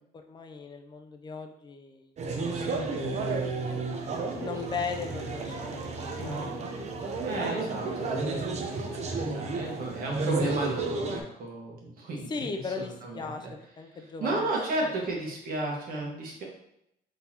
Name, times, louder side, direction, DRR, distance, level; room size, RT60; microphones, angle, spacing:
voice 1, 0.1-2.1 2.4-2.8 4.3-6.7 12.3-14.5, left 4 dB, 25° left, 6 dB, 0.5 m, -38 dB
sound 1, 2.2-11.2, right 3 dB, 40° right, 0.7 m, -32 dB
voice 2, 2.5-2.9 5.0-5.5 6.2-6.5 7.2-12.5 12.8-13.5 14.2-16.4, right 2 dB, 60° right, -1 dB, 1.3 m, -34 dB
4.2 x 3.8 x 2.9 m, 0.77 s
cardioid pair, 110°, 17 cm